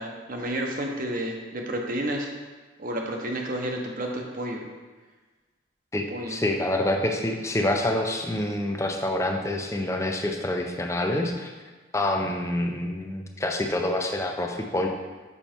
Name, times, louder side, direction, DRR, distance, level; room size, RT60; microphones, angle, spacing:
voice 1, 0.0-2.3 2.8-4.6 6.1-6.4, right 1 dB, 45° right, 1 dB, 1.0 m, -31 dB
voice 2, 5.9-11.5 11.9-14.9, left 1 dB, 15° left, 3 dB, 0.6 m, -27 dB
7.1 x 5.6 x 4.4 m, 1.3 s
head